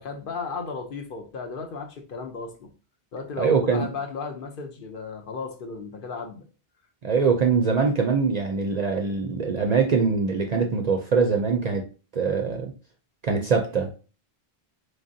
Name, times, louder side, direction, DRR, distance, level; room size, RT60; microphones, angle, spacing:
voice 1, 0.0-2.7 3.1-6.4, left 4 dB, 60° left, 0.8 m, -35 dB
voice 2, 3.4-3.9 7.0-11.9 12.1-12.7 13.2-13.9, right 5 dB, 55° right, 0.5 m, -23 dB
3.9 x 3.2 x 2.6 m
omnidirectional pair, 1.1 m